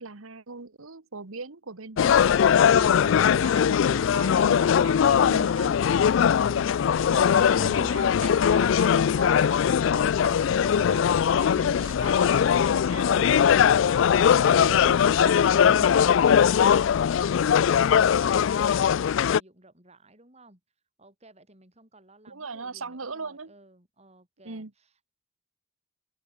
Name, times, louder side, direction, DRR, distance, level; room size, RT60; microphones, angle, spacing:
voice 1, 0.0-2.2 2.7-6.0 6.5-6.6 7.1-13.6 14.3-15.9 22.3-23.5 24.4-24.7, right 4 dB, 90° right, 1.4 m, -40 dB
sound 1, 2.0-19.4, left 8 dB, 65° left, 0.3 m, -21 dB
voice 2, 6.4-8.0 15.9-20.6 21.0-25.1, right 2 dB, 30° right, 6.5 m, -55 dB
open air
head